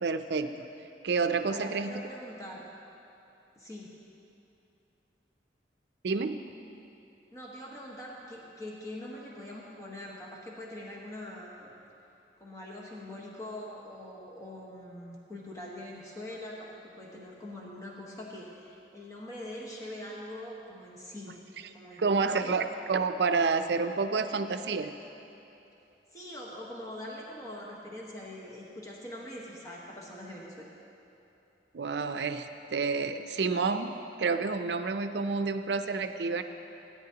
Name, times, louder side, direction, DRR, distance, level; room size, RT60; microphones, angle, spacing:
voice 1, 0.0-0.6 1.0-2.0 6.0-6.5 22.0-25.0 31.7-36.4, right 4 dB, 75° right, 9 dB, 0.5 m, -29 dB
voice 2, 1.5-2.7 3.5-4.0 7.3-11.7 12.4-21.4 21.7-22.6 26.1-30.7, left 1 dB, 20° left, -4 dB, 1.3 m, -43 dB
17.0 x 9.9 x 2.9 m, 2.9 s
head